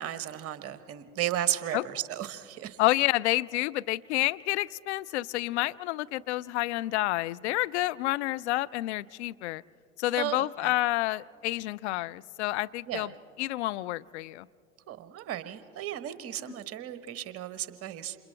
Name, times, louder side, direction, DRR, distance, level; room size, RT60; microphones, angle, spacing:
voice 1, 0.0-2.8 10.2-10.7 12.9-13.1 14.9-18.2, right 11 dB, 35° right, 12 dB, 1.1 m, -34 dB
voice 2, 2.8-9.6 10.0-13.1 13.4-14.5, left 17 dB, 55° left, 16 dB, 0.5 m, -29 dB
28.5 x 27.5 x 3.3 m, 2.5 s
figure-of-eight pair, 85°, 42 cm